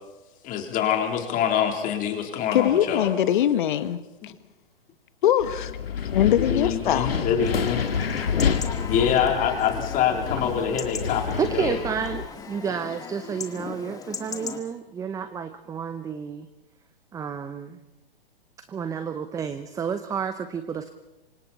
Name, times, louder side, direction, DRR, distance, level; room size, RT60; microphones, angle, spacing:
voice 1, 0.4-3.1 6.1-7.9 8.9-11.8, left 8 dB, 25° left, 3 dB, 3.7 m, -25 dB
voice 2, 2.5-4.0 5.2-5.7 6.1-7.1, left 11 dB, 55° left, 12 dB, 1.5 m, -22 dB
Wind, 5.4-12.3, left 7 dB, 75° left, 2.1 m, -29 dB
Chatter / Livestock farm animals working animals / Chirp tweet, 7.4-14.6, left 5 dB, 10° left, 1.8 m, -38 dB
voice 3, 11.4-16.5 17.1-17.8 18.7-20.9, right 6 dB, 10° right, 11 dB, 0.8 m, -30 dB
28.0 x 25.0 x 4.4 m, 1.0 s
hypercardioid pair, 120°, 30 cm